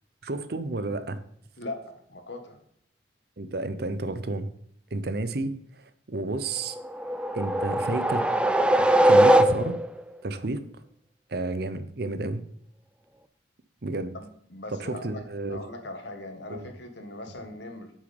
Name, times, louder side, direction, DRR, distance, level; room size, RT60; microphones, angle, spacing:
voice 1, 0.2-1.2 3.4-4.5 4.9-5.5 6.1-6.8 7.3-8.3 8.8-9.8 10.2-10.6 11.3-12.4 13.8-14.1 14.7-15.6 16.5-16.7, right 2 dB, 60° right, 0.8 m, -31 dB
voice 2, 1.6-2.6 14.1-15.2 15.5-17.9, left 2 dB, 75° left, 1.7 m, -40 dB
sound 1, 6.7-10.0, right 1 dB, 5° right, 0.5 m, -21 dB
7.9 x 6.4 x 5.3 m
head